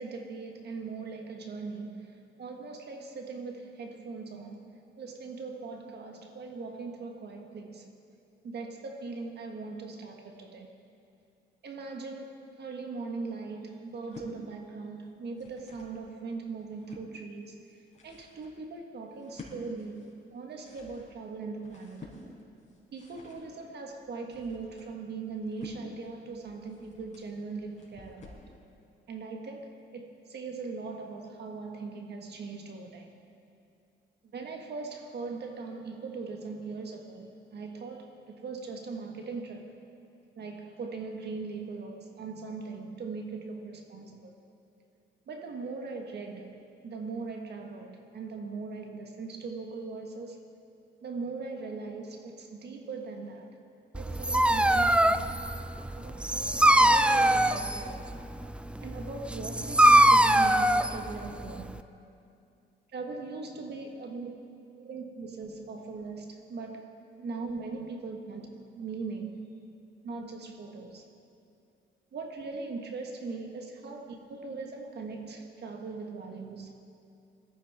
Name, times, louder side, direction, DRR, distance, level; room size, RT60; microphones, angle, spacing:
voice 1, 0.0-4.6 5.0-7.9 8.4-10.7 11.6-17.6 18.0-22.1 22.9-28.4 29.1-33.1 34.3-39.7 40.4-44.4 45.3-46.6 46.8-50.4 51.0-53.5 53.9-55.4 55.9-58.1 58.8-61.7 62.9-64.4 64.7-66.9 67.2-69.5 70.0-71.0 72.1-76.7, right 4 dB, 55° right, 3 dB, 1.5 m, -40 dB
sound 1, 13.9-14.3 15.1-16.0 16.5-17.1 17.7-28.5, left 3 dB, 35° left, 4.3 m, -51 dB
Dog, 53.9-61.8, right 1 dB, 5° right, 0.4 m, -23 dB
19.5 x 14.0 x 3.5 m, 2.6 s
cardioid pair, 90°, 20 cm